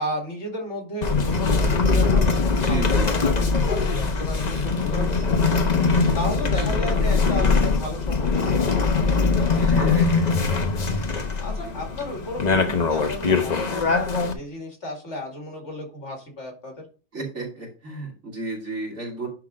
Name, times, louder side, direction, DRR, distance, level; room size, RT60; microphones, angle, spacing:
voice 1, 0.0-2.8 3.0-5.8 6.1-9.7 11.4-16.8, left 1 dB, 75° left, 1 dB, 2.7 m, -34 dB
sound 1, 1.0-14.3, left 4 dB, 40° left, 1.0 m, -22 dB
voice 2, 2.6-3.1 6.5-7.5 9.6-10.4 11.6-11.7 17.1-19.3, right 2 dB, 80° right, -4 dB, 3.2 m, -34 dB
10.5 x 3.6 x 5.1 m, 0.36 s
omnidirectional pair, 1.2 m